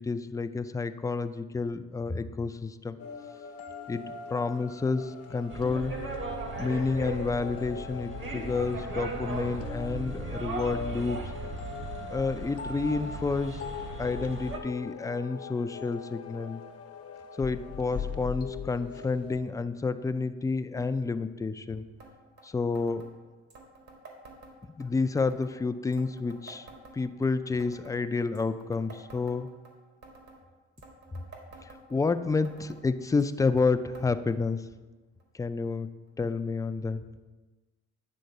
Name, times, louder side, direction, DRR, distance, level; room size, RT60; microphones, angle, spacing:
voice 1, 0.0-3.0 3.9-4.0 4.3-5.9 6.6-11.3 12.1-13.6 14.0-16.6 17.4-21.9 22.4-23.0 24.8-26.7 26.9-29.5 31.7-34.6 35.4-35.9 36.2-37.0, left 4 dB, 10° left, 10 dB, 0.4 m, -29 dB
sound 1, 3.0-19.4, left 6 dB, 55° left, 0.8 m, -41 dB
sound 2, 5.5-14.6, right 3 dB, 40° right, 1.2 m, -37 dB
sound 3, 22.0-22.1 22.4-22.5 22.7-23.1 23.5-24.9 25.2-25.5 25.9-27.3 27.6-28.0 28.3-29.7 30.0-30.4 30.8-32.1 32.4-32.8 33.2-33.7 33.9-34.1 34.3-34.4 35.2-35.3 36.1-36.2, right 3 dB, 65° right, 1.9 m, -50 dB
9.6 x 3.8 x 6.5 m, 1.2 s
cardioid pair, 90°, 30 cm